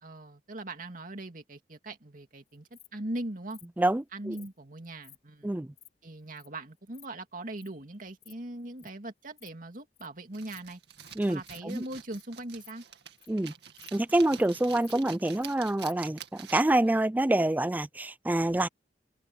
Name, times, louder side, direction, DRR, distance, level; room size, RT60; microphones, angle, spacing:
voice 1, 0.0-3.6 4.1-5.5 6.0-10.8 11.2-12.8, right 1 dB, 50° right, 2.6 m, -40 dB
Insect, 2.5-2.9 3.5-3.7 4.3-4.5 5.0-5.2 5.5-5.9 6.4-6.5 6.7-7.1 7.6-7.7 8.1-8.3 8.6-8.9 9.2-9.5 9.7-10.1 10.5-10.7 11.0-11.1 11.4-11.6 12.0-12.2 12.5-13.4 13.8-13.9 14.2-14.5 14.8-15.5 15.8-15.9, left 11 dB, 40° left, 5.7 m, -54 dB
voice 2, 3.8-4.3 5.4-5.7 11.2-11.8 13.3-13.5 13.9-18.7, right 1 dB, 10° right, 0.3 m, -27 dB
sound 1, 10.3-16.9, right 9 dB, 65° right, 2.3 m, -47 dB
open air
head